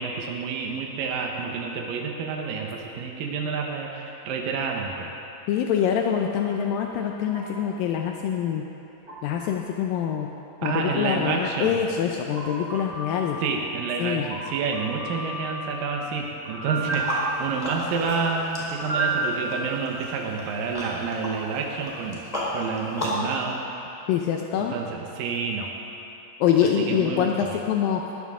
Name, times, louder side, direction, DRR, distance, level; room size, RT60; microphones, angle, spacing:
voice 1, 0.0-5.1 10.6-11.7 13.4-22.2 22.5-23.8 24.5-25.7 26.6-27.6, right 5 dB, 75° right, 0 dB, 2.8 m, -29 dB
voice 2, 5.5-8.6 9.2-10.3 10.6-13.4 14.0-14.2 24.1-24.8 26.4-28.0, left 8 dB, 80° left, 2 dB, 2.4 m, -25 dB
sound 1, 6.2-6.5 7.3-7.7 9.1-9.5 12.3-13.5 14.2-15.7 16.4-17.9 18.7-19.4, right 3 dB, 25° right, 2.8 m, -32 dB
sound 2, 16.8-23.3, left 1 dB, 10° left, 2.8 m, -34 dB
20.0 x 15.0 x 3.7 m, 2.9 s
omnidirectional pair, 4.2 m